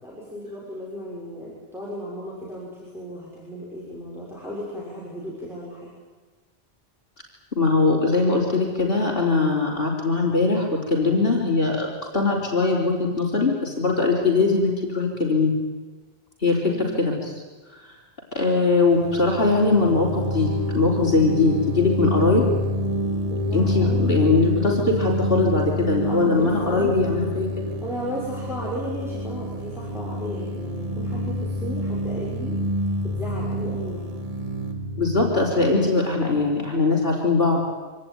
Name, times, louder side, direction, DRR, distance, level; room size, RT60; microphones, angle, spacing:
voice 1, 0.0-5.9 16.7-17.1 23.3-24.2 26.1-26.9 27.8-32.6 33.0-34.2, equal, ahead, -6 dB, 6.2 m, -35 dB
voice 2, 7.5-11.9 12.1-15.6 16.4-17.4 17.8-17.9 18.3-22.4 23.5-27.7 35.0-37.6, left 3 dB, 50° left, -2 dB, 4.1 m, -21 dB
sound 1, 18.9-36.5, equal, 30° right, 2.2 m, -28 dB
25.5 x 18.0 x 9.6 m, 1.3 s
omnidirectional pair, 1.2 m